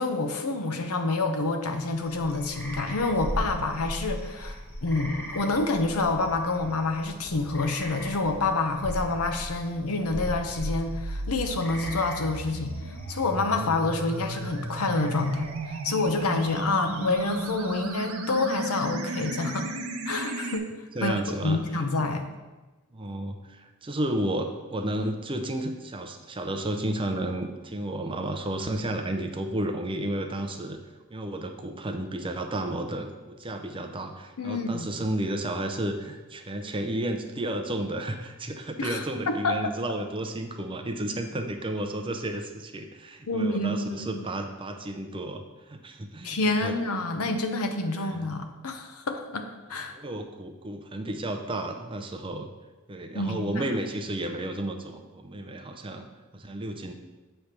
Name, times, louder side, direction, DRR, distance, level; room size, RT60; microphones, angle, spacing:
voice 1, 0.0-19.7 20.1-20.7 21.0-22.3 34.4-34.9 38.8-39.7 43.3-44.2 46.2-49.9 53.1-53.6, left 3 dB, 85° left, 6 dB, 0.8 m, -28 dB
sound 1, 1.8-18.0, equal, 10° left, 1.0 m, -40 dB
sound 2, 10.6-20.6, right 2 dB, 75° right, 0.7 m, -34 dB
voice 2, 20.9-21.6 22.9-30.8 31.1-46.7 48.0-48.1 49.9-52.5 52.9-56.0 56.3-56.9, right 1 dB, 25° right, 5 dB, 0.5 m, -32 dB
8.1 x 3.3 x 5.9 m, 1.2 s
head